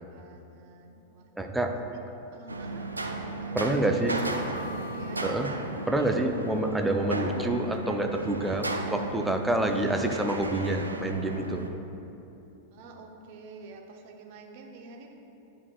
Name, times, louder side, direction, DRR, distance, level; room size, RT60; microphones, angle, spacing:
voice 1, 0.0-1.3 1.9-2.0 2.3-2.9 3.4-5.3 12.7-15.1, right 4 dB, 50° right, 2 dB, 0.8 m, -48 dB
voice 2, 1.3-1.8 3.5-4.2 5.2-5.5 5.9-11.7, right 1 dB, 5° right, 4 dB, 0.5 m, -27 dB
sound 1, 2.5-11.7, right 2 dB, 80° right, 0.4 m, -35 dB
sound 2, 4.1-7.2 7.5-7.6, left 3 dB, 70° left, 0.7 m, -46 dB
10.5 x 5.5 x 2.4 m, 2.9 s
figure-of-eight pair, 90°, 0 cm